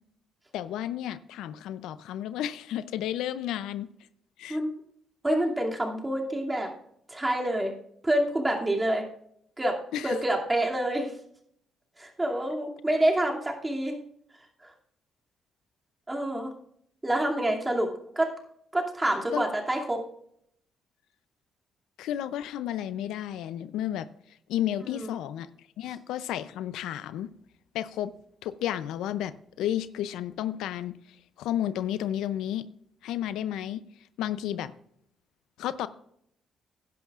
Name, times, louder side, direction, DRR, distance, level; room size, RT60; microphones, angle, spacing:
voice 1, 0.5-3.9 4.4-4.6 9.9-10.2 19.3-19.4 22.0-24.1 24.5-25.5 25.8-27.3 27.7-28.1 28.4-32.6 33.0-33.8 34.2-34.7 35.6-35.9, left 11 dB, 90° left, 14 dB, 0.5 m, -32 dB
voice 2, 5.2-6.7 7.1-7.7 8.0-9.0 9.6-9.8 10.0-11.1 12.0-14.0 14.6-14.7 16.1-16.5 17.0-17.9 18.1-18.3 18.7-20.0 24.9-25.1, right 1 dB, 15° right, 0 dB, 2.5 m, -27 dB
16.0 x 10.5 x 2.4 m, 0.69 s
cardioid pair, 90°, 0 cm